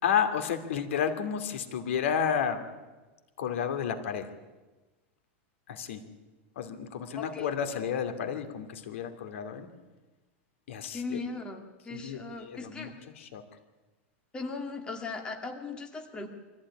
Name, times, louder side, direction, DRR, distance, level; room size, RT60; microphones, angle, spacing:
voice 1, 0.0-2.6 3.4-4.3 5.7-6.0 6.6-9.7 10.7-11.2 11.9-13.4, left 7 dB, 80° left, 8 dB, 2.6 m, -31 dB
voice 2, 7.2-7.5 10.9-12.9 14.3-16.3, left 4 dB, 15° left, 3 dB, 2.1 m, -38 dB
24.0 x 15.0 x 9.8 m, 1.2 s
supercardioid pair, 160°, 7 cm